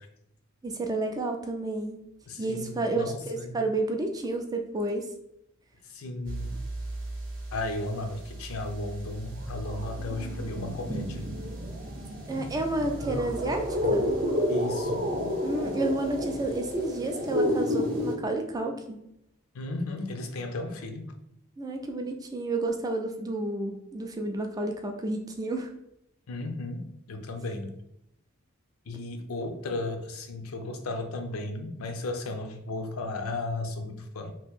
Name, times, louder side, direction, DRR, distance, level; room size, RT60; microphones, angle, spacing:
voice 1, 0.6-2.0 2.4-5.1 12.3-14.1 15.4-19.0 21.6-25.7, right 2 dB, 15° right, 3 dB, 0.3 m, -30 dB
voice 2, 2.3-3.6 5.8-6.6 7.5-11.3 14.5-15.1 19.5-21.1 26.3-27.7 28.9-34.3, left 2 dB, 70° left, 5 dB, 0.5 m, -35 dB
sound 1, 6.3-7.8 8.1-18.2, equal, 40° right, 0.7 m, -31 dB
2.9 x 2.5 x 3.6 m, 0.79 s
head